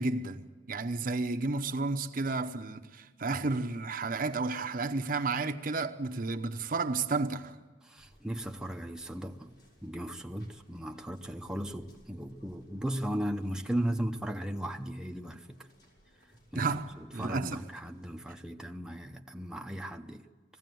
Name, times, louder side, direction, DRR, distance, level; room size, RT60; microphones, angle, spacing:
voice 1, 0.0-7.6 16.5-17.6, right 3 dB, 50° right, 0.9 m, -32 dB
voice 2, 7.8-9.5 9.8-15.6 16.5-16.7 17.0-20.3, right 1 dB, 5° right, 0.8 m, -36 dB
sound 1, 8.0-18.4, equal, 65° left, 6.2 m, -62 dB
20.5 x 15.5 x 9.2 m
head